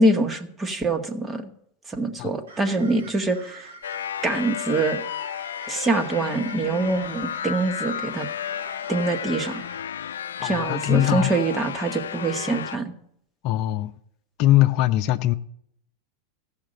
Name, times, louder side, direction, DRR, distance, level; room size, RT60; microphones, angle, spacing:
voice 1, 0.0-1.5 1.9-3.7 4.2-5.0 5.7-8.3 8.9-9.6 10.4-12.9, right 2 dB, 20° right, 1.7 m, -24 dB
sound 1, 2.5-9.8, right 3 dB, 90° right, 2.6 m, -45 dB
sound 2, 3.8-12.8, left 9 dB, 90° left, 0.4 m, -32 dB
voice 2, 10.4-11.3 13.4-13.9 14.4-15.3, left 14 dB, 55° left, 0.7 m, -21 dB
15.0 x 5.9 x 7.8 m
hypercardioid pair, 110°, 0 cm